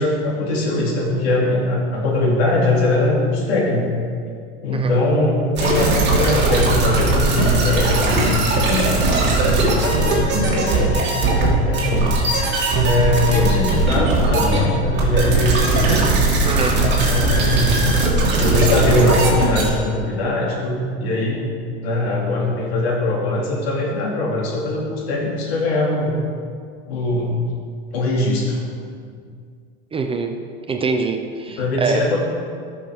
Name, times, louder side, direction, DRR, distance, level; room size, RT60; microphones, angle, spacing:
voice 1, 0.0-3.9 4.6-9.0 9.6-12.1 12.8-16.1 16.8-17.7 18.3-21.4 21.8-26.1 26.9-27.4 27.9-28.6 29.1-29.2 31.6-32.2, left 2 dB, 75° left, -2 dB, 2.5 m, -21 dB
sound 1, 5.6-19.7, right 2 dB, 35° right, 2.5 m, -18 dB
voice 2, 16.4-16.8 29.9-30.4 30.7-32.1, right 4 dB, 20° right, 5 dB, 0.5 m, -24 dB
13.0 x 6.2 x 3.5 m, 2.2 s
supercardioid pair, 115°, 31 cm